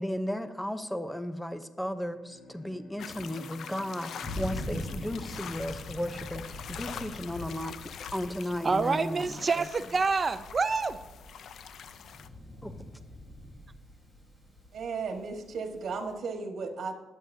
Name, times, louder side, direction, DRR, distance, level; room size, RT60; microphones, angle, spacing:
voice 1, 0.0-7.8 8.1-9.7 12.6-12.9, equal, 5° left, 0.8 m, -35 dB
Bowed string instrument, 2.0-7.4, left 1 dB, 55° left, 3.8 m, -53 dB
sound 1, 3.0-12.3, left 8 dB, 70° left, 0.5 m, -44 dB
Thunder, 4.2-16.1, left 1 dB, 30° left, 4.1 m, -44 dB
voice 2, 8.6-11.0, right 4 dB, 35° right, 0.6 m, -27 dB
voice 3, 14.7-16.9, right 4 dB, 65° right, 1.7 m, -35 dB
21.0 x 8.2 x 2.8 m
cardioid pair, 90°, 0 cm